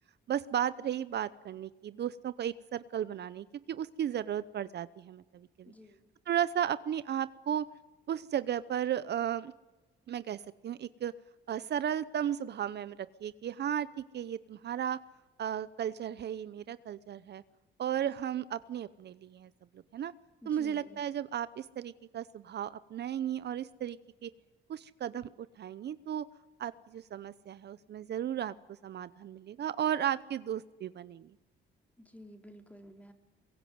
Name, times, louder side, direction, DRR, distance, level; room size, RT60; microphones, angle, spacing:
voice 1, 0.3-5.7 6.3-7.7 8.1-9.5 10.1-11.1 11.5-13.9 14.1-15.0 15.4-17.4 17.8-19.5 19.9-20.1 20.5-24.3 24.7-25.3 25.6-26.2 26.6-28.5 28.8-31.3, right 10 dB, 55° right, 16 dB, 0.7 m, -34 dB
voice 2, 5.7-6.1 20.4-21.0 32.0-33.1, equal, 5° left, 5 dB, 3.7 m, -52 dB
23.0 x 22.5 x 9.5 m, 1.2 s
cardioid pair, 90°, 20 cm